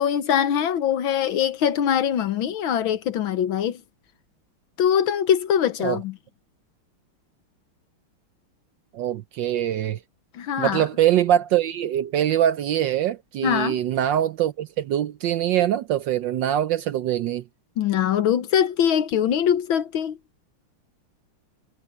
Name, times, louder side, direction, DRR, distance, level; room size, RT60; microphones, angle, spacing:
voice 1, 0.0-3.8 4.8-6.1 10.3-10.8 13.4-13.8 17.8-20.2, left 9 dB, 70° left, 1.7 m, -22 dB
voice 2, 8.9-10.0 10.6-17.4, right 11 dB, 70° right, 1.2 m, -23 dB
omnidirectional pair, 2.4 m